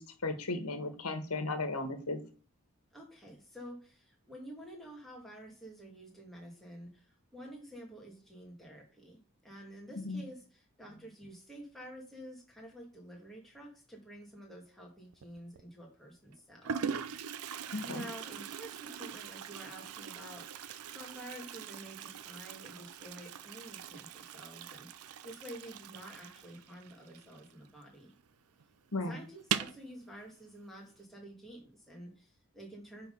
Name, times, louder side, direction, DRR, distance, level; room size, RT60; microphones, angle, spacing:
voice 1, 0.0-2.2 10.0-10.2 17.7-18.0 28.9-29.1, left 2 dB, 85° left, 8 dB, 1.4 m, -35 dB
voice 2, 2.9-16.9 17.8-20.5 20.9-28.1 28.9-33.1, equal, ahead, -2 dB, 2.1 m, -49 dB
Toilet flush, 15.1-15.6 16.3-16.4 16.6-27.9 28.2-28.3 28.6-28.7 29.4-29.9, right 8 dB, 90° right, 0.5 m, -41 dB
9.7 x 3.9 x 5.4 m, 0.40 s
head